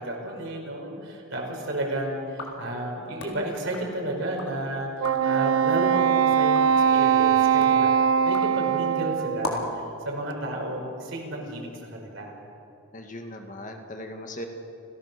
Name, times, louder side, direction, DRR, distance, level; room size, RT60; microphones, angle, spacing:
voice 1, 0.0-7.9 8.2-9.6 10.0-12.3, right 1 dB, 55° right, 0 dB, 5.1 m, -32 dB
sound 1, 2.2-4.6 4.9-5.4 5.8-9.8, left 2 dB, 75° left, 4.0 m, -39 dB
Wind instrument woodwind instrument, 5.0-9.6, right 8 dB, 80° right, 0.8 m, -21 dB
voice 2, 12.9-14.5, left 1 dB, 35° left, 4 dB, 1.9 m, -38 dB
29.5 x 17.0 x 6.8 m, 2.9 s
head